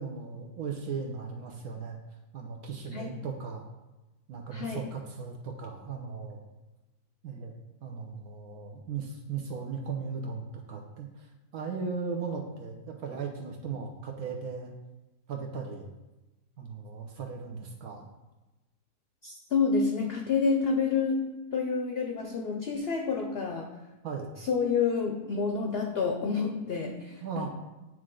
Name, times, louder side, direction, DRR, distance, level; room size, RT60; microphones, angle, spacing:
voice 1, 0.0-2.0 2.3-3.6 4.3-6.4 7.2-7.5 7.8-14.7 15.3-15.9 16.6-18.1 24.0-24.3 27.2-27.5, right 5 dB, 75° right, 1 dB, 1.2 m, -37 dB
voice 2, 4.5-4.8 19.2-23.7 24.4-27.5, left 5 dB, 60° left, 3 dB, 0.6 m, -29 dB
8.7 x 3.2 x 3.7 m, 1.1 s
omnidirectional pair, 1.6 m